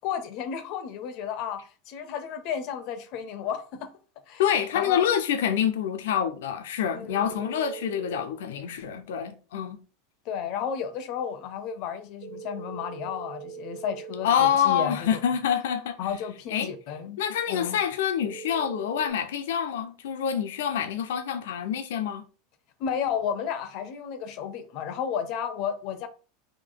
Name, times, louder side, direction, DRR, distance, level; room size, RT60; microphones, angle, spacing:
voice 1, 0.0-3.9 4.3-4.4 4.7-5.1 6.9-7.4 10.3-15.2 16.0-17.2 17.5-17.8 22.8-26.1, left 8 dB, 45° left, 0.6 m, -32 dB
voice 2, 4.4-9.8 14.2-16.0 16.5-16.7 17.2-22.3, left 9 dB, 85° left, 0.6 m, -26 dB
sound 1, 7.1-8.2 12.2-14.2 18.2-19.1, right 6 dB, 75° right, 0.8 m, -41 dB
3.8 x 2.7 x 3.8 m
supercardioid pair, 160°, 0 cm